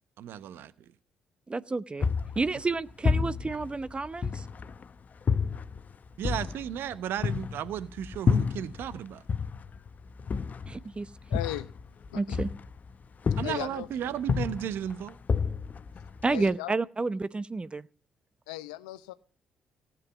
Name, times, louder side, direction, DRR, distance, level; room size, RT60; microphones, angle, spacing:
voice 1, 0.2-0.7 6.2-9.2 13.4-15.2, right 10 dB, 65° right, 0.9 m, -34 dB
voice 2, 1.5-4.5 10.7-11.1 12.1-12.5 16.2-17.9, right 3 dB, 25° right, 0.7 m, -30 dB
sound 1, 2.0-4.8 5.3-9.0 9.3-12.9 13.3-13.8 14.2-16.5, left 5 dB, 45° left, 0.7 m, -30 dB
voice 3, 11.3-11.7 12.1-12.4 13.4-13.9 16.3-16.7 18.5-19.1, left 16 dB, 85° left, 0.7 m, -36 dB
15.5 x 7.6 x 8.3 m
hypercardioid pair, 50°, 4 cm